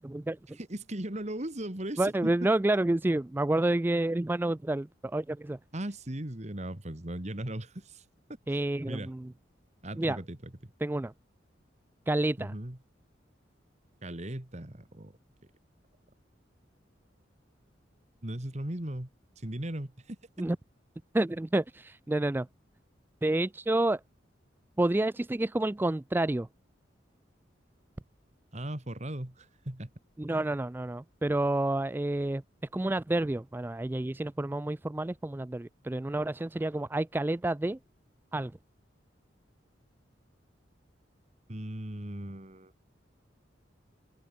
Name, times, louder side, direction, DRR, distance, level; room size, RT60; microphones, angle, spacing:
voice 1, 0.0-0.6 2.0-5.6 8.5-9.3 10.0-10.2 10.8-11.1 12.1-12.5 20.4-20.6 21.1-22.5 23.2-24.0 24.8-26.5 30.2-32.4 32.7-37.8 38.3-38.5, right 1 dB, 10° right, 0.3 m, -29 dB
voice 2, 0.6-2.3 5.7-8.0 8.5-9.1 9.8-10.7 12.4-12.8 14.0-15.1 18.2-19.1 19.4-20.2 28.5-29.9 41.5-42.7, right 1 dB, 40° right, 2.1 m, -38 dB
open air
head